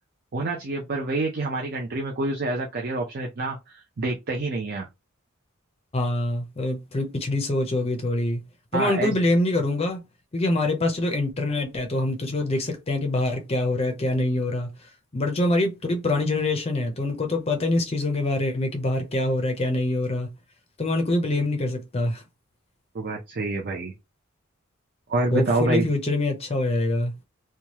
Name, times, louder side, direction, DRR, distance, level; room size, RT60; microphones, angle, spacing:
voice 1, 0.3-4.9 8.7-9.1 22.9-23.9 25.1-25.9, right 2 dB, 50° right, 0.5 m, -27 dB
voice 2, 5.9-8.4 8.7-10.0 10.3-14.7 15.1-20.3 20.8-22.2 25.3-27.1, left 2 dB, 30° left, 0.5 m, -25 dB
3.1 x 2.3 x 2.8 m
head